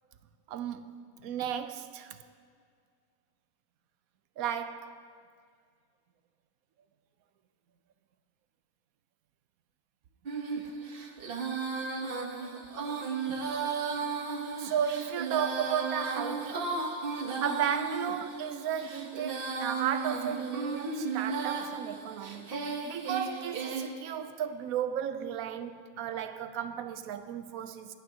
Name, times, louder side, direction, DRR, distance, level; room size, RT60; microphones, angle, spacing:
voice 1, 0.5-2.2 4.4-5.0 12.4-12.5 14.6-16.9 17.4-22.6 22.8-27.9, right 9 dB, 70° right, 1.1 m, -34 dB
Female singing, 10.3-23.9, right 4 dB, 40° right, 1.0 m, -35 dB
22.0 x 11.5 x 2.8 m
omnidirectional pair, 1.6 m